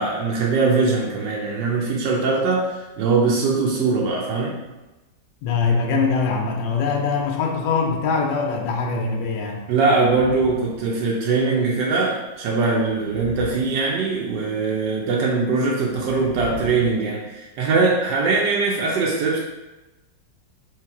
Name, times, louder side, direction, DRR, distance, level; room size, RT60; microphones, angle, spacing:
voice 1, 0.0-2.6 3.0-4.6 9.7-19.4, right 4 dB, 75° right, -3 dB, 1.2 m, -21 dB
voice 2, 5.4-9.7, left 4 dB, 80° left, 1 dB, 1.3 m, -22 dB
sound 1, 9.9-10.8 11.1-11.3 12.8-14.4 15.8-17.1, equal, 55° left, 1.0 m, -38 dB
3.3 x 3.2 x 4.6 m, 1.1 s
omnidirectional pair, 2.0 m